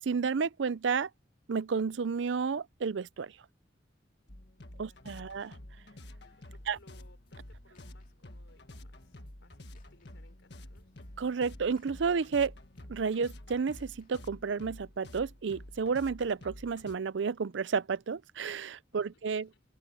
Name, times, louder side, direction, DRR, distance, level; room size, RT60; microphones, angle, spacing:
voice 1, 0.1-1.1 1.5-3.3 4.8-5.5 6.7-6.8 11.2-12.5 12.9-19.4, right 5 dB, 75° right, 0.5 m, -31 dB
sound 1, 4.3-17.0, left 1 dB, 60° left, 1.7 m, -50 dB
voice 2, 4.8-5.6 6.4-11.1 18.9-19.6, left 2 dB, 85° left, 4.7 m, -65 dB
sound 2, 6.7-14.6, left 1 dB, 45° left, 2.7 m, -63 dB
open air
head